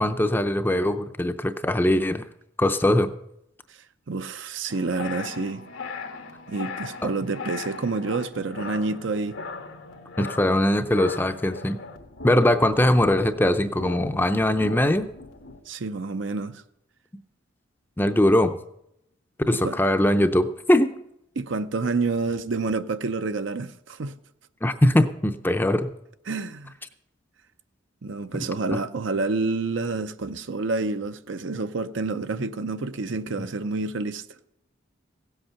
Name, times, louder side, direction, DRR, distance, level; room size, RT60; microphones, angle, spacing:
voice 1, 0.0-2.2 2.6-3.1 7.0-7.1 10.2-11.8 12.2-15.1 18.0-18.6 19.5-20.9 24.6-25.9 28.3-28.5 28.7-28.8, left 1 dB, 10° left, 0.5 m, -21 dB
voice 2, 4.1-5.7 6.5-9.4 15.7-16.6 19.5-19.8 21.4-24.2 26.3-26.7 28.0-34.2, right 3 dB, 70° right, 0.6 m, -28 dB
sound 1, 4.7-15.6, left 4 dB, 90° left, 1.5 m, -39 dB
16.5 x 8.0 x 5.8 m
head